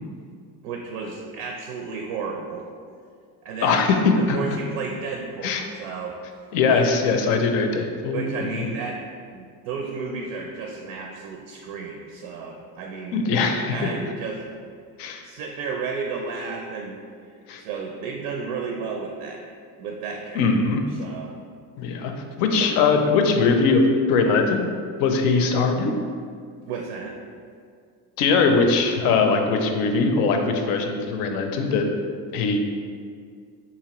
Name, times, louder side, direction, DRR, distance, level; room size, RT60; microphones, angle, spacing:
voice 1, 0.6-2.7 3.4-3.8 4.2-6.2 6.7-6.8 8.1-9.0 9.3-13.2 13.7-14.5 15.2-17.0 17.6-19.4 19.8-20.5 20.9-21.3 22.6-22.7 26.7-27.1, right 4 dB, 80° right, 1 dB, 0.5 m, -32 dB
voice 2, 3.6-4.0 4.3-4.4 5.4-5.6 6.5-8.7 13.1-13.9 15.0-15.3 17.5-17.6 20.4-20.8 21.8-22.1 22.4-24.7 25.0-25.9 28.2-31.9 32.3-32.6, left 4 dB, 65° left, 4 dB, 0.5 m, -21 dB
3.9 x 2.9 x 3.0 m, 2.1 s
cardioid pair, 155°, 39 cm